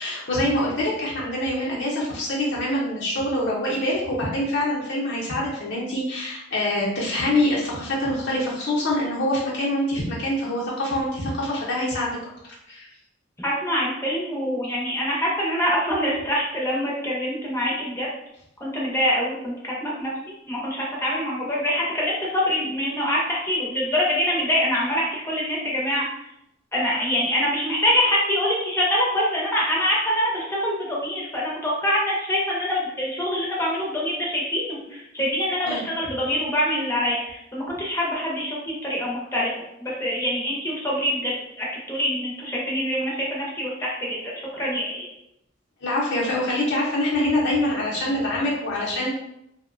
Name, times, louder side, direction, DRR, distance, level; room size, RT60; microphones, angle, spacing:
voice 1, 0.0-12.1 12.4-12.9 35.6-35.8 45.8-49.1, left 1 dB, 65° left, -6 dB, 0.7 m, -25 dB
voice 2, 13.4-18.1 18.6-20.1 20.5-26.1 26.7-39.5 39.8-44.2 44.5-45.1, equal, 15° left, -4 dB, 0.7 m, -25 dB
2.7 x 2.1 x 2.5 m, 0.81 s
head